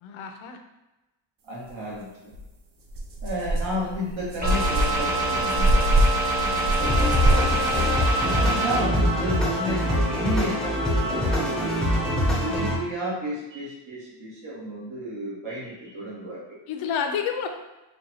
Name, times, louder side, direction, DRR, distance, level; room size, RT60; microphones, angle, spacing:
voice 1, 0.0-0.6 6.4-7.1 16.7-17.5, left 7 dB, 80° left, 5 dB, 0.6 m, -30 dB
voice 2, 1.5-2.3 3.2-5.9 8.2-12.0 12.4-16.6, equal, 70° right, -6 dB, 1.4 m, -32 dB
sound 1, 2.3-2.4 2.9-7.9, right 1 dB, 45° right, 0.6 m, -25 dB
sound 2, 4.4-8.8, right 2 dB, 20° right, 0.9 m, -25 dB
sound 3, 6.8-12.8, left 1 dB, ahead, 0.5 m, -24 dB
5.1 x 2.3 x 2.8 m, 1.0 s
cardioid pair, 150°, 47 cm